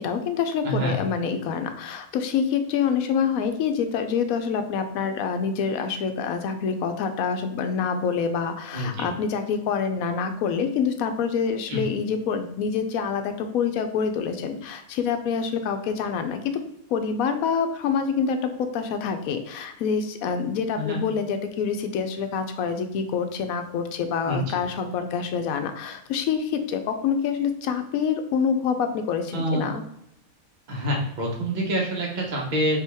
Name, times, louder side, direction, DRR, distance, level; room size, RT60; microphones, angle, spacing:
voice 1, 0.0-16.5 16.9-29.8, left 6 dB, 80° left, 7 dB, 1.0 m, -26 dB
voice 2, 0.6-1.0 8.7-9.1 11.7-11.8 20.8-21.0 24.3-24.4 29.3-29.7 30.7-32.8, right 1 dB, 35° right, -2 dB, 1.0 m, -26 dB
4.6 x 2.9 x 3.4 m, 0.80 s
omnidirectional pair, 1.5 m